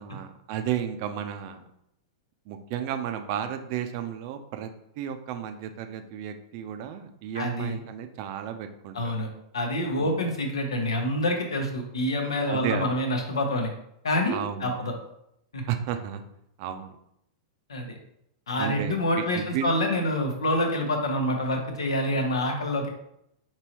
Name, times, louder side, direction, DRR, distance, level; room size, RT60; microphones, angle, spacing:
voice 1, 0.0-1.7 2.5-4.7 5.0-9.1 10.0-10.2 12.5-12.9 14.3-14.9 15.7-16.2 16.6-16.9 18.6-19.8, right 9 dB, 45° right, 8 dB, 0.5 m, -33 dB
voice 2, 7.3-7.8 8.9-9.3 9.5-13.7 14.0-14.9 15.5-15.6 17.7-18.0 18.5-22.9, left 1 dB, 75° left, 3 dB, 0.8 m, -27 dB
4.6 x 3.0 x 2.9 m, 0.76 s
figure-of-eight pair, 100°, 3 cm